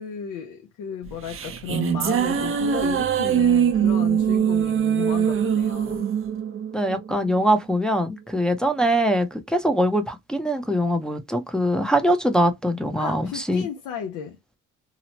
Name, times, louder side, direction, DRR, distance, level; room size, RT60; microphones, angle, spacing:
voice 1, 0.0-6.1 13.0-14.4, left 8 dB, 90° left, 0.7 m, -34 dB
sound 1, 1.0-7.6, right 8 dB, 45° right, 0.6 m, -23 dB
voice 2, 6.7-13.7, equal, ahead, 0.6 m, -22 dB
2.9 x 2.0 x 2.8 m
cardioid pair, 90°, 30 cm